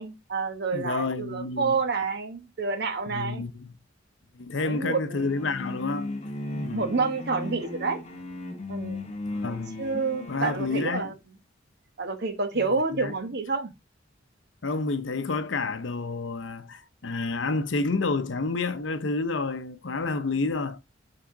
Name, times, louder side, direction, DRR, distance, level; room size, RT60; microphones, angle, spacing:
voice 1, 0.0-3.4 4.5-5.3 6.7-8.0 8.7-9.0 9.4-11.1 12.0-13.7, right 4 dB, 60° right, 1.1 m, -29 dB
voice 2, 0.7-1.8 3.1-3.7 4.3-6.2 6.5-7.0 9.3-9.8 10.3-11.1 12.9-13.1 14.6-20.8, left 3 dB, 70° left, 0.7 m, -29 dB
sound 1, 5.2-11.0, left 2 dB, 35° left, 1.0 m, -36 dB
6.7 x 3.7 x 4.7 m
head